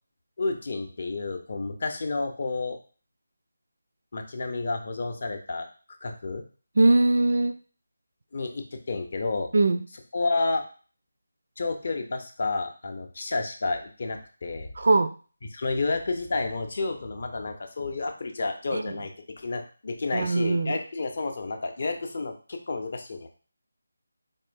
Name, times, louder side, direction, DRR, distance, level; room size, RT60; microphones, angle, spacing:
voice 1, 0.4-2.8 4.1-5.7 6.0-6.4 8.3-9.5 10.1-10.6 11.6-14.7 15.5-19.1 19.4-23.3, left 3 dB, 45° left, 5 dB, 0.5 m, -30 dB
voice 2, 6.8-7.5 9.5-9.8 14.8-15.1 18.7-18.9 20.1-20.8, right 2 dB, 50° right, 10 dB, 0.3 m, -21 dB
4.2 x 3.1 x 2.5 m, 0.39 s
figure-of-eight pair, 155°, 0 cm